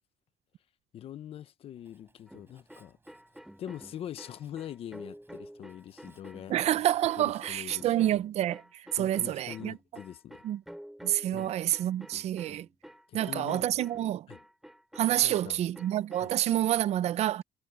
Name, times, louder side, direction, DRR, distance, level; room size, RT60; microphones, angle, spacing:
voice 1, 0.9-3.0 3.6-6.5 7.2-8.1 9.0-10.4 11.3-11.5 13.1-13.8 14.3-14.4 15.2-15.6 16.2-16.3, left 10 dB, 50° left, 0.7 m, -43 dB
Writing, 1.8-8.2, right 3 dB, 20° right, 5.6 m, -65 dB
sound 1, 2.3-16.3, equal, ahead, 2.7 m, -50 dB
voice 2, 6.5-9.8 10.4-10.6 11.0-12.7 13.1-14.3 15.0-17.4, right 12 dB, 60° right, 0.5 m, -28 dB
cardioid pair, 170°, 12 cm